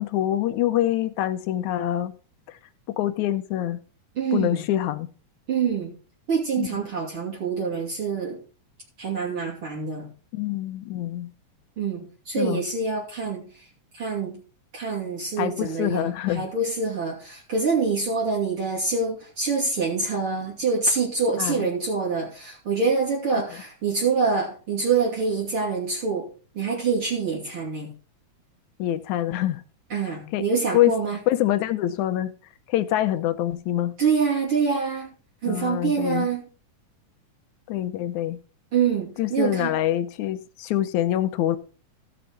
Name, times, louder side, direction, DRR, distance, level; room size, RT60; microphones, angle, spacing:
voice 1, 0.0-2.1 2.5-2.6 2.9-3.8 4.3-5.1 6.6-6.8 10.3-11.3 12.4-12.6 15.4-16.5 21.4-21.7 28.8-29.6 30.3-30.5 30.7-31.0 31.3-32.3 32.7-33.9 35.5-36.3 37.7-38.4 39.2-41.6, left 13 dB, 75° left, 1.9 m, -25 dB
voice 2, 4.2-4.6 5.5-6.0 6.3-8.4 9.0-10.0 11.8-13.5 13.9-14.4 14.7-26.3 26.6-27.9 29.9-31.2 34.0-35.1 35.4-36.4 38.7-39.7, right 5 dB, 40° right, 3.3 m, -25 dB
15.5 x 6.6 x 4.2 m
omnidirectional pair, 3.8 m